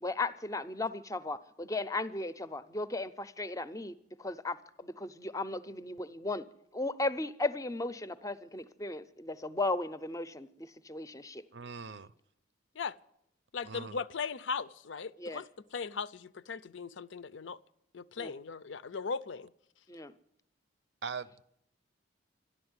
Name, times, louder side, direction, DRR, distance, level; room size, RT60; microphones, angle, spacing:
voice 1, 0.0-6.4 6.7-11.4 15.2-15.4 18.2-18.3 19.9-20.2, left 2 dB, 20° left, 0.5 m, -36 dB
voice 2, 11.5-12.1 13.6-14.0 21.0-21.4, right 5 dB, 65° right, 0.6 m, -41 dB
voice 3, 13.5-15.4 15.7-17.6 17.9-19.5, left 5 dB, 85° left, 0.5 m, -38 dB
13.0 x 11.0 x 9.6 m
head